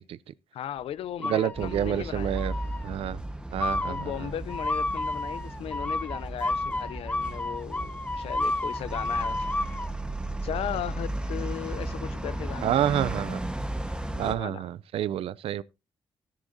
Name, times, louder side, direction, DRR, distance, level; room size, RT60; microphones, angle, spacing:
voice 1, 0.5-2.4 3.8-9.6 10.4-12.8 14.1-14.7, left 10 dB, 80° left, 0.5 m, -37 dB
sound 1, 1.2-2.0 2.4-2.9 3.6-9.9, left 2 dB, 15° left, 0.5 m, -31 dB
voice 2, 1.2-2.5 2.8-3.2 3.5-4.3 12.6-13.4 14.2-15.6, right 11 dB, 80° right, 0.5 m, -28 dB
sound 2, 1.5-14.3, right 1 dB, 10° right, 1.2 m, -35 dB
13.0 x 10.5 x 2.7 m
cardioid pair, 65°, 10 cm